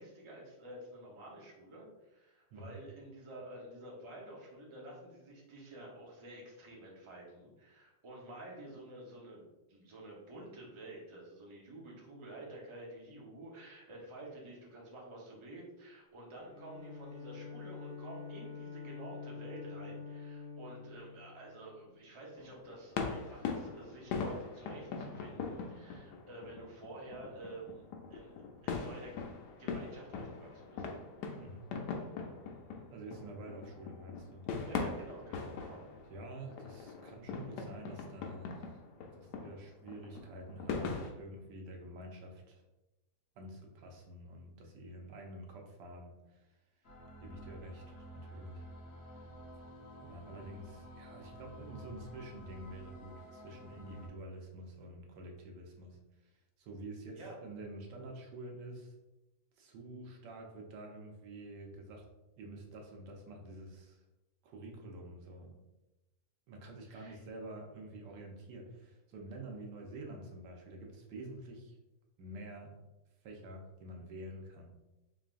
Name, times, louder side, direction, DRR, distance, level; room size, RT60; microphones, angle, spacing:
voice 1, 0.0-27.8 28.1-29.2 29.6-30.8 34.6-35.8 57.1-57.3 66.9-67.2, right 1 dB, 30° right, -3 dB, 0.6 m, -50 dB
Bowed string instrument, 16.4-22.0, left 5 dB, 5° left, 1.0 m, -47 dB
sound 1, 22.4-41.1, left 5 dB, 80° left, 1.2 m, -41 dB
voice 2, 32.9-34.6 36.1-38.8 39.1-42.6 43.4-46.6 47.2-48.6 50.0-56.3 56.6-58.9 59.6-62.1 62.4-64.0 64.4-65.6 66.5-71.8 72.2-72.8 73.2-74.7, right 1 dB, 85° right, 1 dB, 1.4 m, -48 dB
sound 2, 46.8-54.1, right 1 dB, 45° left, 1.0 m, -51 dB
3.8 x 3.6 x 2.4 m, 1.0 s
omnidirectional pair, 1.8 m